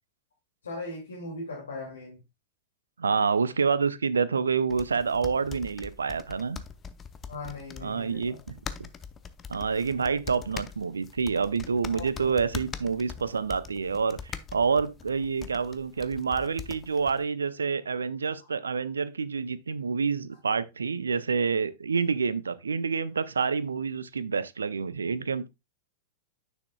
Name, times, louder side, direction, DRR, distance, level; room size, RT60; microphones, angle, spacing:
voice 1, 0.6-2.2 7.3-8.4 11.9-12.3, left 2 dB, 70° left, 2.3 m, -39 dB
voice 2, 3.0-6.6 7.8-8.3 8.8-8.9 9.5-25.5, right 5 dB, 75° right, 0.5 m, -28 dB
sound 1, 4.7-17.2, left 6 dB, 20° left, 0.6 m, -43 dB
9.7 x 6.3 x 2.3 m
figure-of-eight pair, 95°, 0 cm